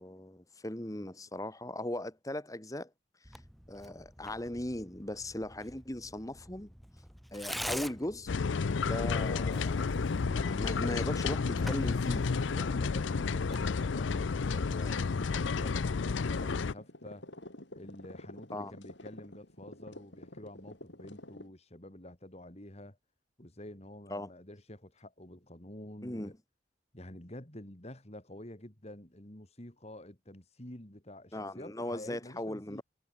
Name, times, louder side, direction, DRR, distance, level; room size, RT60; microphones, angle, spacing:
voice 1, 0.0-2.9 3.7-6.7 7.3-8.5 8.8-9.9 10.3-12.3 18.5-18.7 24.1-24.3 26.0-26.3 31.3-32.8, left 1 dB, 20° left, 1.8 m, -38 dB
Tearing, 3.2-14.8, equal, ahead, 3.7 m, -47 dB
sound 1, 8.3-16.7, left 4 dB, 90° left, 0.5 m, -31 dB
sound 2, 9.9-21.5, left 1 dB, 75° left, 6.4 m, -47 dB
voice 2, 11.5-11.9 12.5-17.3 17.7-23.0 23.4-26.4 26.9-32.8, left 1 dB, 35° left, 3.2 m, -48 dB
head